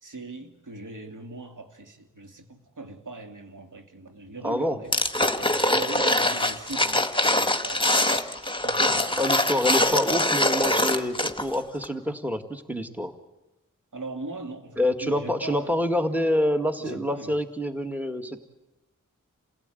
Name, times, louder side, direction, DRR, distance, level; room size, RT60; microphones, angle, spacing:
voice 1, 0.0-4.9 5.3-8.0 8.6-9.3 13.9-15.8 16.8-17.4, right 2 dB, 70° right, 2.7 m, -40 dB
voice 2, 4.4-4.8 9.2-13.1 14.8-18.4, left 1 dB, 5° right, 1.9 m, -26 dB
sound 1, 4.9-11.5 11.8-11.9, left 1 dB, 15° left, 1.8 m, -23 dB
28.5 x 17.0 x 9.2 m
wide cardioid pair, 70°, 32 cm